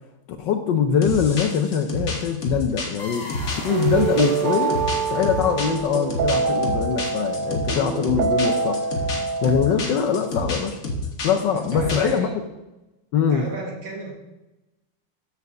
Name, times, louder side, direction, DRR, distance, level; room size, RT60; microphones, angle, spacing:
voice 1, 0.4-3.3 3.6-4.8 5.1-8.8 9.4-10.8 11.2-12.3 13.1-13.5, left 7 dB, 70° left, 6 dB, 1.1 m, -22 dB
sound 1, 1.0-12.2, left 2 dB, 50° left, 1.6 m, -29 dB
sound 2, 3.0-6.1, left 2 dB, 20° left, 1.7 m, -38 dB
sound 3, 3.5-10.0, right 5 dB, 85° right, 0.7 m, -25 dB
voice 2, 11.5-12.4 13.3-14.1, right 2 dB, 65° right, -1 dB, 2.4 m, -33 dB
6.9 x 4.7 x 6.8 m, 0.99 s
omnidirectional pair, 2.3 m